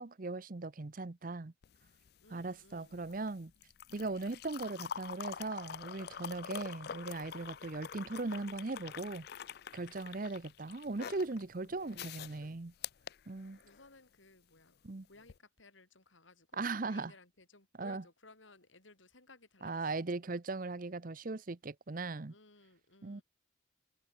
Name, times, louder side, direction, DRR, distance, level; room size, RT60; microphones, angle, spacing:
voice 1, 0.0-1.5 2.3-3.5 3.9-9.3 9.7-12.7 13.3-13.6 14.8-15.1 16.5-17.1 17.8-18.0 19.6-22.3 23.0-23.2, right 3 dB, 45° right, 0.7 m, -39 dB
sound 1, 1.6-13.9 15.2-15.4, left 8 dB, 55° left, 0.4 m, -46 dB
voice 2, 2.2-3.1 13.4-14.8 15.1-20.2 22.3-23.2, left 3 dB, 75° left, 5.8 m, -60 dB
head